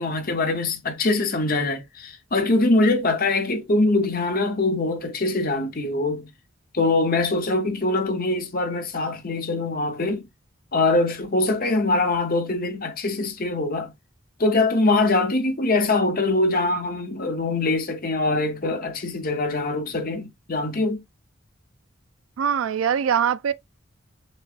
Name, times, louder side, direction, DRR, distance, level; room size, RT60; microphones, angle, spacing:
voice 1, 0.0-6.3 6.7-10.3 10.7-13.9 14.4-21.0, left 2 dB, 45° left, 0.9 m, -23 dB
voice 2, 22.4-23.5, right 8 dB, 85° right, 0.4 m, -22 dB
6.3 x 2.2 x 2.5 m
head